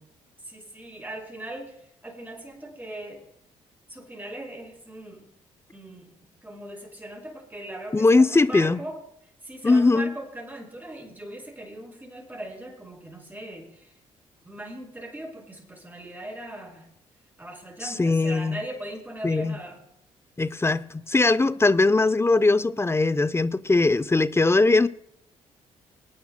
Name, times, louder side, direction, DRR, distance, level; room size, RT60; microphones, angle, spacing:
voice 1, 0.4-3.3 3.9-5.3 5.7-6.1 6.4-9.0 9.4-14.0 14.4-16.9 17.4-19.8, right 1 dB, 15° right, 5.3 m, -39 dB
voice 2, 7.9-8.8 9.6-10.1 17.8-18.6 19.2-19.6 20.4-24.9, left 3 dB, 15° left, 0.5 m, -20 dB
26.0 x 9.4 x 2.2 m
hypercardioid pair, 50°, 14 cm